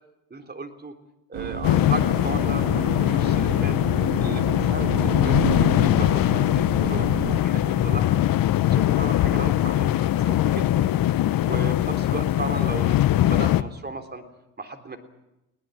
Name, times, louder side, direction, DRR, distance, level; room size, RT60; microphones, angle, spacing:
voice 1, 0.3-1.0 1.3-3.8 4.2-8.2 8.7-10.9 11.5-14.2 14.6-15.0, right 3 dB, 20° right, 7 dB, 3.7 m, -35 dB
sound 1, 1.3-7.4, right 7 dB, 80° right, 3.5 m, -31 dB
sound 2, 1.6-13.6, left 13 dB, 50° left, 1.1 m, -21 dB
20.5 x 19.5 x 10.0 m, 0.93 s
hypercardioid pair, 75°, 43 cm